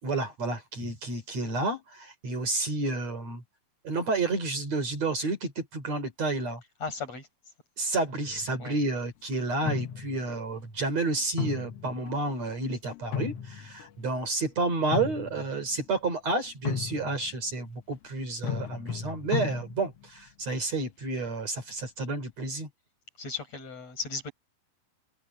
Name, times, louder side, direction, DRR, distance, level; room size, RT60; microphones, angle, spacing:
voice 1, 0.0-3.4 3.8-6.6 7.8-22.7, right 3 dB, 45° right, 4.7 m, -30 dB
voice 2, 6.8-7.3 8.6-8.8 23.2-24.3, left 5 dB, 40° left, 7.5 m, -36 dB
sound 1, 8.3-8.8 9.6-10.4 11.4-12.5 12.9-14.1 14.7-15.6 16.6-17.4 18.4-20.1, left 8 dB, 80° left, 1.4 m, -35 dB
omnidirectional pair, 4.4 m